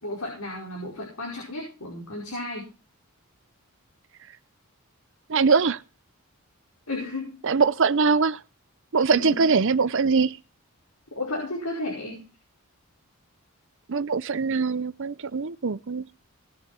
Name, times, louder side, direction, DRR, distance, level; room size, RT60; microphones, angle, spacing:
voice 1, 0.0-2.7 6.9-7.4 9.1-9.5 11.1-12.3, left 2 dB, 85° left, 5.2 m, -33 dB
voice 2, 5.3-5.8 7.4-8.4 8.9-10.4 13.9-16.0, right 5 dB, 60° right, 0.7 m, -22 dB
19.0 x 7.3 x 4.4 m
head